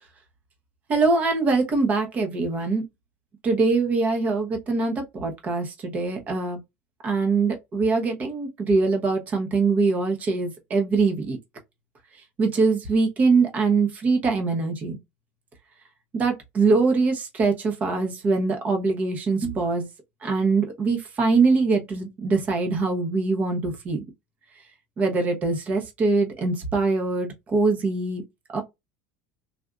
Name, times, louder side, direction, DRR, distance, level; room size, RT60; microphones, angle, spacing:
voice 1, 0.9-2.8 3.4-6.6 7.0-11.4 12.4-15.0 16.1-19.9 20.2-24.0 25.0-28.2 28.5-28.6, right 3 dB, 25° right, 0.8 m, -23 dB
3.6 x 2.5 x 2.3 m
cardioid pair, 165°, 6 cm